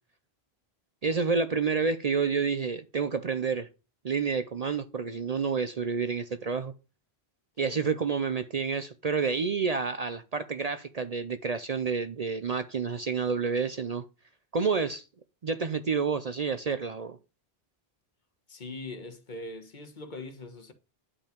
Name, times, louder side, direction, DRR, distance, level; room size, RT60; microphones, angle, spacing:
voice 1, 1.0-3.7 4.0-6.7 7.6-14.0 14.5-15.0 15.4-17.2, right 5 dB, 45° right, 0.6 m, -29 dB
voice 2, 18.5-20.7, left 2 dB, 50° left, 1.3 m, -41 dB
9.8 x 5.5 x 5.1 m
omnidirectional pair, 1.0 m